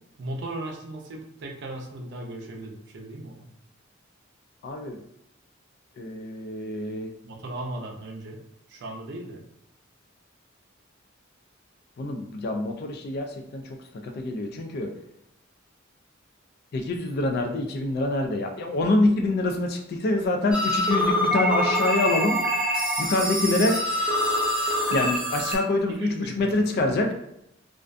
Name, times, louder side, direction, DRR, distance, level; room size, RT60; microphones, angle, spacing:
voice 1, 0.2-3.5 7.2-8.4 8.7-9.4 25.9-26.6, right 1 dB, 60° right, 1 dB, 0.5 m, -37 dB
voice 2, 4.6-5.0 6.0-7.1 12.0-13.6 14.0-14.9 16.7-22.4 23.0-23.8 24.9-27.1, left 2 dB, 50° left, 4 dB, 0.3 m, -25 dB
sound 1, 20.5-25.6, equal, 5° right, 0.5 m, -25 dB
2.4 x 2.2 x 2.5 m, 0.77 s
head